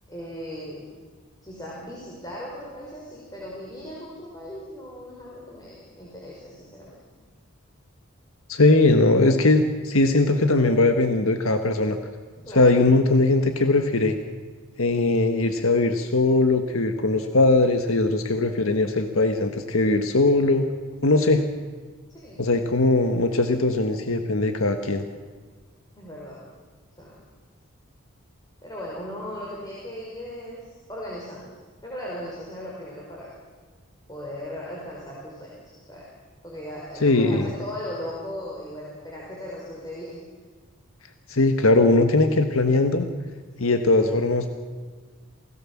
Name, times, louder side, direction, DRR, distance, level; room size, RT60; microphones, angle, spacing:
voice 1, 0.1-0.8 1.4-6.9 12.4-12.7 22.1-22.6 25.9-26.4 27.0-27.2 28.6-31.5 31.8-33.3 34.1-36.1 36.4-40.2 43.6-43.7, equal, 20° left, -5 dB, 5.2 m, -37 dB
voice 2, 8.5-12.0 12.5-14.2 14.8-20.6 21.0-21.4 22.4-25.1 37.0-37.5 41.3-43.1 43.6-44.5, left 2 dB, 80° left, 7 dB, 1.5 m, -20 dB
28.5 x 18.0 x 7.4 m, 1.5 s
head